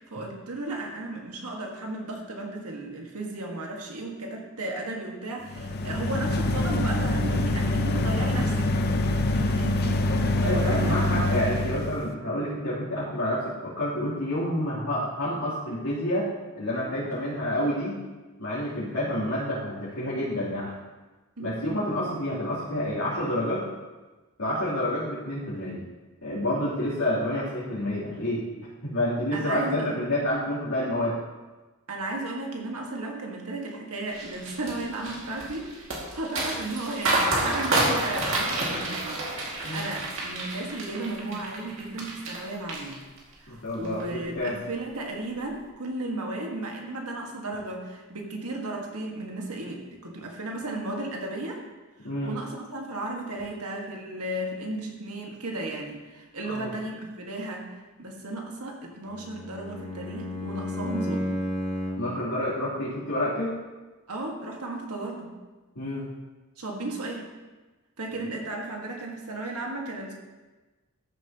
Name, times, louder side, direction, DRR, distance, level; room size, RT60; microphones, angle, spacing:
voice 1, 0.0-8.7 9.3-11.3 21.4-21.5 29.3-30.1 31.9-35.7 36.1-43.0 43.4-51.6 52.0-61.4 64.1-65.4 66.6-67.3 68.0-70.1, right 2 dB, 85° right, 0 dB, 1.7 m, -34 dB
sound 1, 5.4-12.1, left 2 dB, 45° left, 0.6 m, -25 dB
voice 2, 10.3-16.3 16.6-18.0 18.4-20.8 21.4-23.6 24.4-25.8 26.2-28.4 28.8-31.2 39.6-39.9 43.5-44.5 52.0-52.3 56.5-56.7 62.0-63.5 65.7-66.1, left 1 dB, 85° left, -12 dB, 3.3 m, -28 dB
sound 2, 34.1-42.4 42.7-43.3 43.7-44.0, right 2 dB, 60° right, 2.3 m, -29 dB
Bowed string instrument, 59.0-62.2, left 1 dB, 5° left, 1.8 m, -32 dB
13.5 x 7.5 x 3.0 m, 1.2 s
head